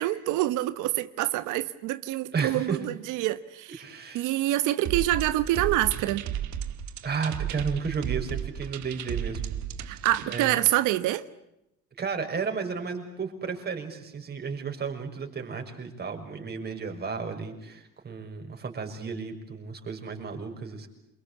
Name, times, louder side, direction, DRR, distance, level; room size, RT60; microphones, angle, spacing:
voice 1, 0.0-3.8 4.1-6.2 9.8-11.2, right 15 dB, 90° right, 1.3 m, -26 dB
voice 2, 2.3-2.8 3.8-4.3 7.0-9.4 9.9-10.6 12.0-20.9, right 5 dB, 35° right, 6.3 m, -33 dB
sound 1, 4.8-10.5, right 10 dB, 70° right, 2.0 m, -34 dB
28.0 x 24.0 x 8.5 m
cardioid pair, 125°, 30 cm